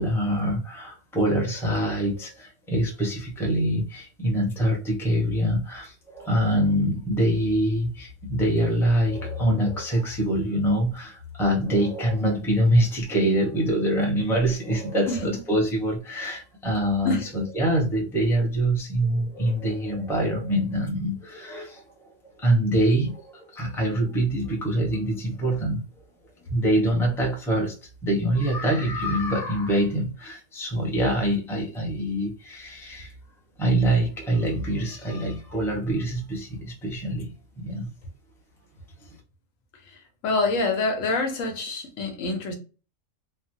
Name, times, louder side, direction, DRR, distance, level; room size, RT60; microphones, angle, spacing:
voice 1, 0.0-22.1 22.4-25.8 26.5-27.7 28.0-33.1 33.6-37.9, right 1 dB, 5° left, 0.6 m, -25 dB
voice 2, 40.2-42.5, left 3 dB, 85° left, 1.2 m, -26 dB
3.2 x 2.1 x 2.7 m
omnidirectional pair, 1.3 m